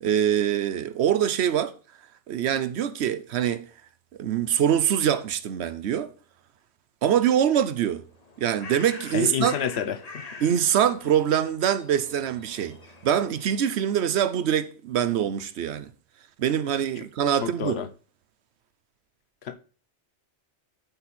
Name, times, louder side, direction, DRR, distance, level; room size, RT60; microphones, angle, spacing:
voice 1, 0.0-1.7 2.3-3.7 4.2-6.1 7.0-8.0 8.4-9.5 10.4-12.8 13.0-15.9 16.4-17.8, right 9 dB, 70° right, 0.9 m, -24 dB
Bird, 8.1-14.1, left 3 dB, 35° left, 1.0 m, -45 dB
voice 2, 9.1-10.3 17.4-17.9 19.4-19.6, left 8 dB, 65° left, 1.0 m, -29 dB
12.0 x 4.1 x 4.3 m
omnidirectional pair, 1.2 m